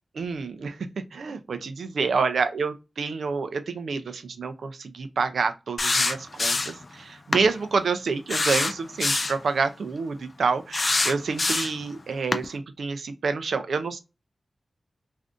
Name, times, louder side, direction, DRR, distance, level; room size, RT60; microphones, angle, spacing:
voice 1, 0.1-14.0, right 4 dB, 85° right, 0.4 m, -28 dB
sound 1, 5.8-6.8 7.3-7.5 8.3-9.4 10.7-11.8 12.3-12.5, left 3 dB, 50° left, 0.3 m, -24 dB
2.5 x 2.4 x 3.5 m
cardioid pair, 50°, 0 cm